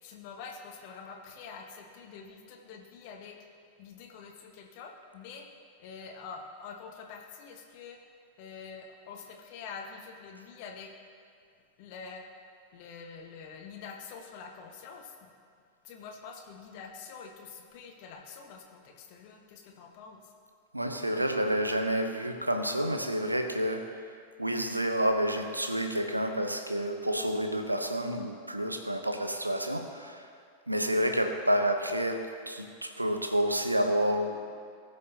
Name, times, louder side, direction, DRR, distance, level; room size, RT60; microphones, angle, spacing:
voice 1, 0.0-3.4 3.8-5.4 5.8-8.0 8.4-10.9 11.8-12.2 12.7-15.1 15.8-20.3, left 5 dB, 45° left, 2 dB, 1.3 m, -46 dB
voice 2, 20.7-23.8 24.4-30.2 30.7-34.4, equal, 85° right, 5 dB, 0.8 m, -29 dB
18.5 x 6.6 x 2.8 m, 2.2 s
figure-of-eight pair, 90°, 0 cm